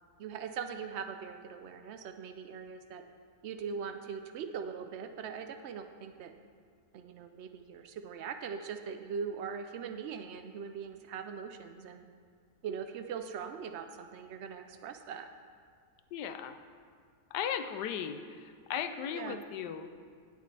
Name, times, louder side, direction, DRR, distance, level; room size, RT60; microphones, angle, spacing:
voice 1, 0.2-3.0 3.4-6.3 6.9-12.0 12.6-15.3 19.1-19.4, right 6 dB, 85° right, 7 dB, 0.6 m, -41 dB
voice 2, 16.1-16.6 17.3-18.2 18.7-19.9, left 8 dB, 85° left, 9 dB, 1.2 m, -36 dB
17.0 x 6.6 x 3.3 m, 2.1 s
omnidirectional pair, 1.7 m